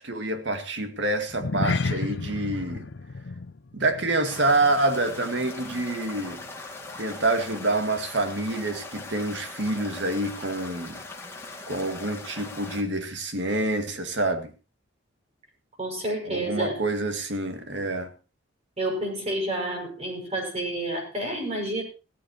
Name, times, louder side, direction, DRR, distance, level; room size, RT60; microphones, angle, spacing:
voice 1, 0.0-2.9 3.7-6.4 7.0-11.0 11.7-14.5 16.2-18.1, right 2 dB, 65° right, 2.1 m, -27 dB
sound 1, 1.3-5.9 6.2-6.5 7.0-7.1, left 3 dB, 65° left, 0.6 m, -32 dB
sound 2, 4.2-12.8, left 2 dB, 15° left, 2.3 m, -40 dB
voice 2, 15.8-16.8 18.8-21.8, right 1 dB, 35° right, 5.9 m, -29 dB
17.0 x 14.5 x 3.0 m
head